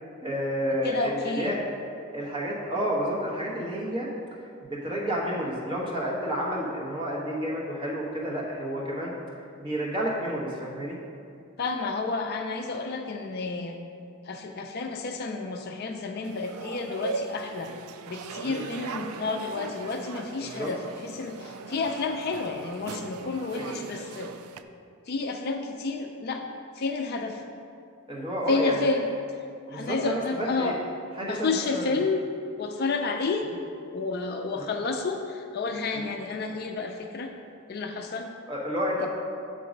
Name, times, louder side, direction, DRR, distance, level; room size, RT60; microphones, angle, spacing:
voice 1, 0.2-1.6 2.1-4.4 4.7-9.1 9.6-11.0 18.4-18.7 20.4-20.7 23.5-23.9 28.1-28.9 29.7-30.7 31.1-32.0 33.5-33.6 34.6-34.7 35.9-36.1 38.5-39.1, equal, 25° right, -4 dB, 1.1 m, -30 dB
voice 2, 0.8-1.6 11.6-13.8 14.3-17.7 18.1-24.3 25.1-26.4 26.8-27.4 28.5-29.1 29.7-30.8 31.2-32.3 32.6-33.5 33.9-37.3 37.7-38.3, left 3 dB, 45° left, 4 dB, 0.3 m, -30 dB
sound 1, 16.2-24.6, right 4 dB, 75° right, 0.3 m, -39 dB
7.5 x 3.8 x 5.1 m, 2.5 s
head